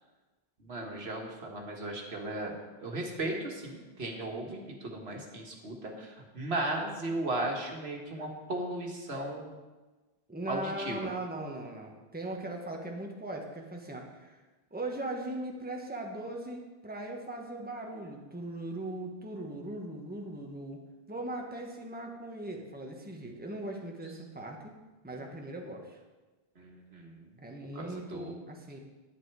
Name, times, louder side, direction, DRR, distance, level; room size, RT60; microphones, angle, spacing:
voice 1, 0.6-2.5 2.8-9.5 10.5-11.1 25.2-25.3 26.6-27.3 27.8-28.3, right 2 dB, 80° right, 1 dB, 1.8 m, -36 dB
voice 2, 10.3-14.4 14.7-20.8 21.1-24.8 25.0-26.0 27.4-28.8, right 1 dB, 10° right, 1 dB, 1.2 m, -39 dB
11.0 x 9.3 x 4.8 m, 1.2 s
omnidirectional pair, 1.1 m